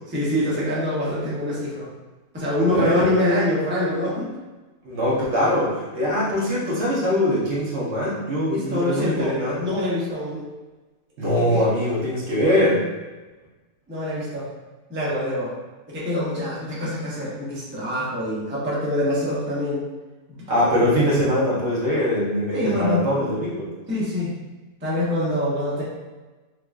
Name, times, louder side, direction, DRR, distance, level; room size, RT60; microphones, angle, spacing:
voice 1, 0.1-1.9 2.3-4.3 8.5-10.4 11.5-11.6 13.9-14.5 14.9-15.5 15.9-19.9 20.3-20.4 20.8-21.0 22.5-23.0 23.9-24.4 24.8-25.8, left 1 dB, 10° right, -7 dB, 0.6 m, -25 dB
voice 2, 2.7-3.1 4.8-9.7 11.2-12.9 20.5-23.7, equal, 55° right, -6 dB, 1.1 m, -22 dB
4.8 x 2.4 x 2.3 m, 1.2 s
omnidirectional pair, 1.5 m